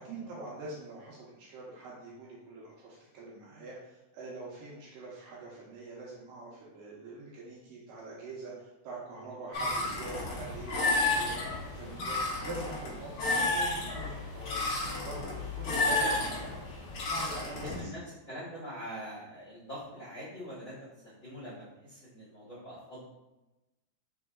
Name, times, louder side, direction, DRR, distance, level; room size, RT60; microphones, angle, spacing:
voice 1, 0.0-11.3 11.7-14.6 15.0-16.6 17.1-17.9, right 2 dB, 75° right, -4 dB, 2.2 m, -44 dB
sound 1, 9.5-17.8, left 2 dB, 90° left, 1.2 m, -32 dB
voice 2, 15.6-16.1 17.6-23.1, equal, 55° left, -10 dB, 1.3 m, -44 dB
5.2 x 3.8 x 2.3 m, 1.0 s
omnidirectional pair, 4.3 m